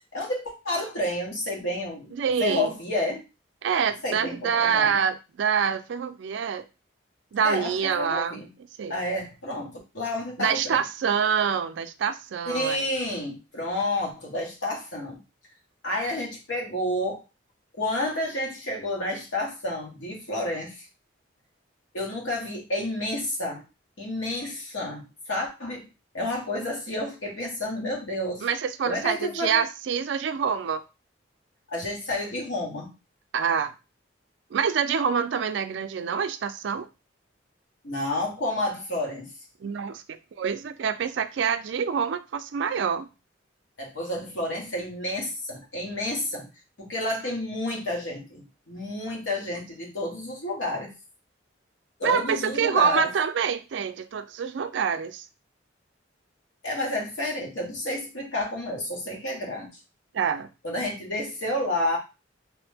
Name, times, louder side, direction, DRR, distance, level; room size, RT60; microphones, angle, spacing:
voice 1, 0.1-3.2 4.0-5.0 7.4-8.5 8.9-10.8 12.4-15.2 15.8-17.2 17.7-20.9 21.9-23.6 24.0-25.9 26.1-28.4 28.8-29.6 31.7-32.9 37.8-39.3 43.8-46.5 46.8-50.9 52.0-53.1 56.6-59.8 60.6-62.0, left 1 dB, 85° left, 1.2 m, -30 dB
voice 2, 2.1-2.7 3.6-6.6 7.3-8.4 8.8-8.9 10.4-12.8 28.4-30.8 33.3-33.7 34.5-36.9 39.6-43.1 52.0-55.3 60.1-60.5, right 7 dB, 70° right, 0.3 m, -26 dB
3.0 x 2.1 x 3.3 m
head